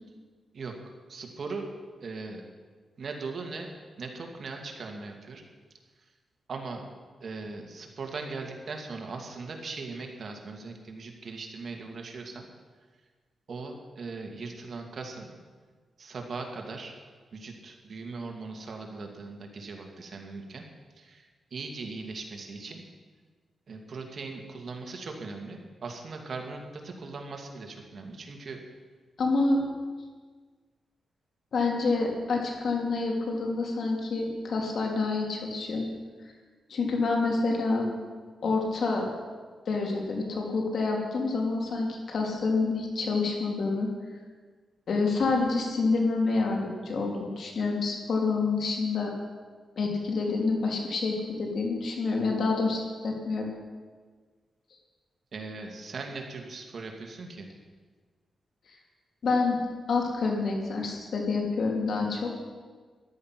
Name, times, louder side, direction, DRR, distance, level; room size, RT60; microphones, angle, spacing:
voice 1, 1.1-1.7 2.0-2.4 3.0-3.7 4.0-5.4 6.0-6.1 6.5-6.8 7.2-12.5 13.5-15.3 16.0-16.9 17.3-20.6 20.9-22.8 23.7-28.6 55.3-57.5, right 3 dB, 55° right, 3 dB, 2.2 m, -39 dB
voice 2, 29.2-29.6 31.5-35.9 36.7-37.9 38.4-39.0 39.7-43.9 44.9-49.1 49.8-53.5 59.2-59.6 59.9-62.3, left 3 dB, 65° left, 0 dB, 3.0 m, -27 dB
14.0 x 11.5 x 6.0 m, 1.5 s
cardioid pair, 95°, 0 cm